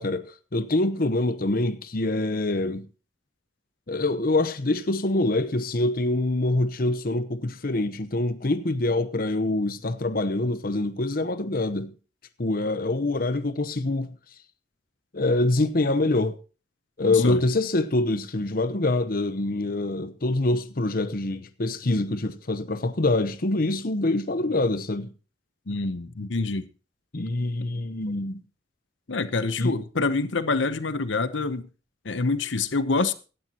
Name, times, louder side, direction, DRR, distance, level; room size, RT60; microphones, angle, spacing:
voice 1, 0.0-2.9 3.9-11.9 12.4-14.1 15.1-16.4 17.0-25.1 27.1-28.4 29.6-29.7, left 2 dB, 55° left, 0.9 m, -25 dB
voice 2, 17.1-17.4 25.7-26.7 29.1-31.7 32.0-33.1, left 3 dB, 85° left, 0.9 m, -26 dB
17.0 x 12.0 x 3.0 m
head